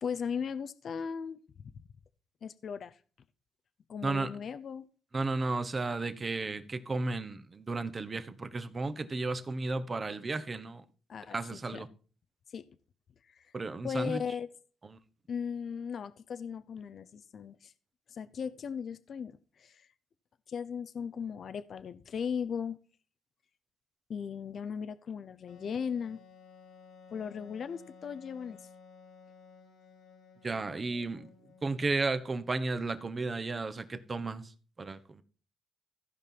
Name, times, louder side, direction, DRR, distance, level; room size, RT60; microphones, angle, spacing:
voice 1, 0.0-1.8 2.4-3.0 3.9-4.9 11.1-11.8 12.5-12.6 13.3-13.5 13.8-14.5 15.3-17.7 18.1-19.9 20.5-22.8 24.1-26.2 27.1-28.7, left 6 dB, 55° left, 0.7 m, -37 dB
voice 2, 4.0-4.4 5.1-10.8 11.3-11.9 13.5-14.2 14.8-15.0 30.4-31.3 31.6-35.2, right 3 dB, 30° right, 1.1 m, -34 dB
Wind instrument woodwind instrument, 25.5-31.9, left 5 dB, 75° left, 2.2 m, -56 dB
15.0 x 5.4 x 5.9 m
cardioid pair, 90°, 0 cm